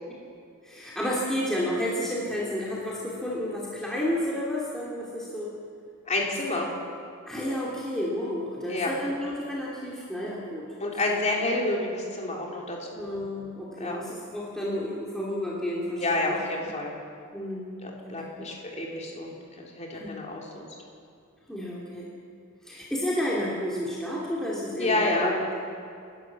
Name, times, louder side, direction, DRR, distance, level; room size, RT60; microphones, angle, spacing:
voice 1, 0.6-5.6 6.3-6.4 7.3-10.7 11.1-11.2 12.9-16.4 17.3-17.8 18.0-18.5 19.9-20.2 21.5-22.1 22.6-25.3, left 1 dB, ahead, -6 dB, 2.7 m, -31 dB
voice 2, 6.1-6.7 8.7-8.9 10.8-13.0 13.8-14.0 16.0-16.9 17.8-20.7 24.8-25.6, left 2 dB, 30° left, -1 dB, 3.4 m, -29 dB
29.0 x 12.0 x 7.4 m, 2.4 s
head